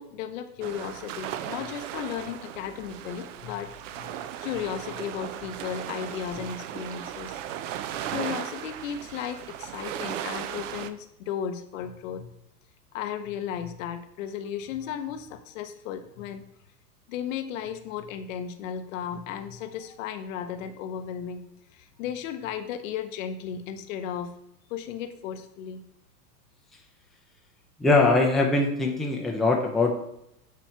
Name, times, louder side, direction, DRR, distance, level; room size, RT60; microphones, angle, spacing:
voice 1, 0.0-4.1 4.4-7.4 8.1-12.3 12.9-16.5 17.1-24.4 24.7-25.8, left 8 dB, 50° left, 8 dB, 0.8 m, -35 dB
sound 1, 0.6-10.9, right 10 dB, 50° right, 0.6 m, -36 dB
voice 2, 27.8-30.0, left 3 dB, ahead, 1 dB, 0.5 m, -22 dB
7.4 x 3.1 x 5.7 m, 0.79 s
hypercardioid pair, 110°, 49 cm